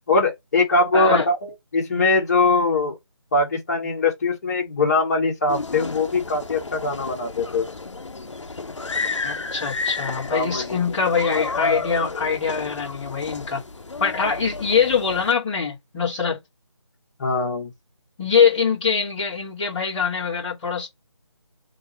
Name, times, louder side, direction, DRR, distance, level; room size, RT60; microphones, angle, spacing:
voice 1, 0.1-3.0 3.3-7.7 10.3-10.8 17.2-17.7, left 3 dB, 30° left, 1.9 m, -22 dB
voice 2, 0.9-1.2 9.2-13.6 14.0-16.4 18.2-20.9, left 6 dB, 15° left, 1.6 m, -23 dB
sound 1, 5.5-15.3, left 4 dB, 75° left, 0.9 m, -32 dB
3.5 x 2.9 x 4.3 m
figure-of-eight pair, 160°, 16 cm